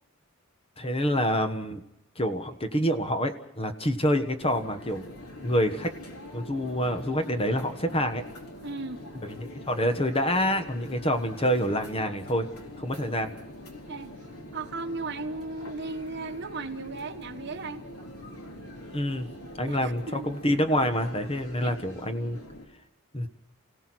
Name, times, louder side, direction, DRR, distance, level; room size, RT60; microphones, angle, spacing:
voice 1, 0.8-1.8 2.1-5.1 5.4-5.9 6.3-8.2 9.2-12.5 12.8-13.3 18.9-19.3 19.6-22.4 23.1-23.3, equal, 25° left, 1.3 m, -27 dB
sound 1, 4.4-22.7, left 1 dB, 90° left, 3.9 m, -44 dB
voice 2, 8.6-9.0 13.9-14.1 14.5-17.9 19.6-20.3 21.6-21.7, right 3 dB, 50° right, 1.3 m, -36 dB
29.5 x 17.0 x 6.2 m
head